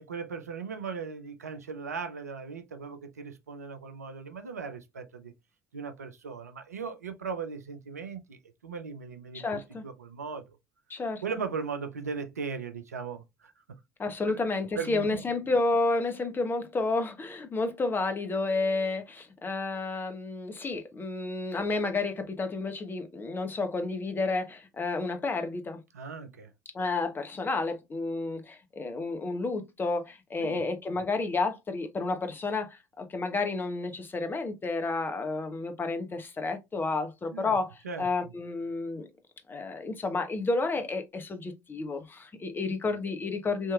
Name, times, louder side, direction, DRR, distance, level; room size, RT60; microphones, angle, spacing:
voice 1, 0.0-5.3 5.7-10.6 11.2-13.5 14.3-14.4 14.8-15.3 25.9-26.5 30.4-30.7 37.3-37.6 37.8-38.3, right 5 dB, 85° right, 0.4 m, -38 dB
voice 2, 9.3-9.8 10.9-11.2 14.0-25.8 26.7-37.7 38.0-39.1 39.5-43.7, left 3 dB, 25° left, 0.8 m, -31 dB
3.5 x 2.8 x 2.3 m
figure-of-eight pair, 60°, 8 cm